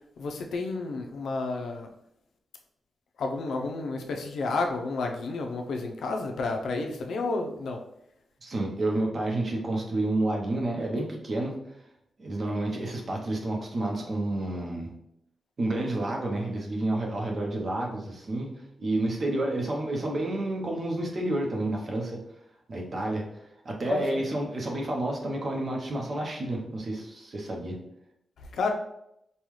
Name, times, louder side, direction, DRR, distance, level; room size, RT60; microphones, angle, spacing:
voice 1, 0.2-1.9 3.2-7.8 23.9-24.2 28.5-28.7, left 3 dB, 90° left, 2 dB, 0.6 m, -31 dB
voice 2, 8.4-11.6 12.2-14.9 15.6-22.2 22.7-23.2 23.6-27.8, right 1 dB, 40° right, 0 dB, 0.8 m, -30 dB
5.4 x 2.3 x 3.1 m, 0.79 s
wide cardioid pair, 175°, 0 cm